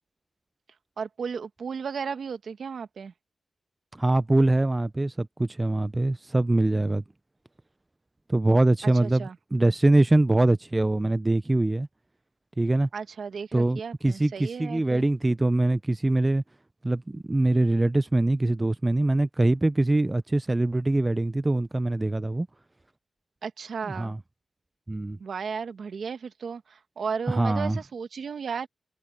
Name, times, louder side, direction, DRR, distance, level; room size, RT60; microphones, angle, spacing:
voice 1, 1.0-3.1 8.8-9.4 12.9-15.0 23.4-24.1 25.2-28.7, right 6 dB, 70° right, 1.5 m, -34 dB
voice 2, 3.9-7.0 8.3-11.9 12.6-12.9 13.5-16.4 16.8-22.5 23.8-24.2 24.9-25.2 27.3-27.8, right 2 dB, 20° right, 0.3 m, -23 dB
wide cardioid pair, 90°, 0 cm